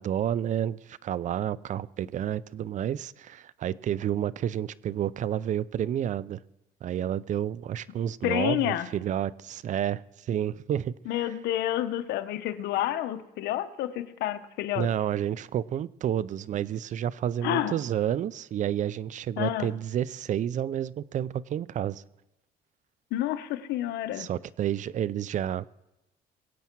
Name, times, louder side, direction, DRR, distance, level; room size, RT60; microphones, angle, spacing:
voice 1, 0.0-6.4 6.8-10.9 14.8-22.0 24.2-25.6, right 10 dB, 45° right, 19 dB, 0.5 m, -30 dB
voice 2, 8.2-8.9 11.1-14.9 17.4-17.8 19.4-19.7 23.1-24.3, left 13 dB, 80° left, 10 dB, 1.0 m, -29 dB
22.0 x 8.3 x 4.6 m, 0.98 s
cardioid pair, 110°, 17 cm